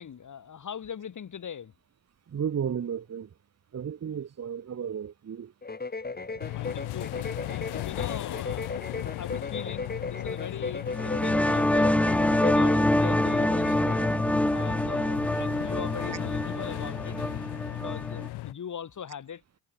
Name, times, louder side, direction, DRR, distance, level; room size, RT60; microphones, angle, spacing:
voice 1, 0.0-1.7 6.3-7.1 7.4-8.7 9.2-14.0 14.5-17.2 17.7-19.4, left 8 dB, 50° left, 6.3 m, -41 dB
voice 2, 2.3-3.3 3.7-5.5, right 8 dB, 40° right, 1.8 m, -33 dB
sound 1, 5.6-14.2, left 4 dB, 25° left, 4.4 m, -36 dB
sound 2, 6.4-18.5, left 17 dB, 75° left, 5.7 m, -36 dB
sound 3, 10.9-18.3, left 1 dB, 5° left, 0.8 m, -26 dB
supercardioid pair, 65°, 39 cm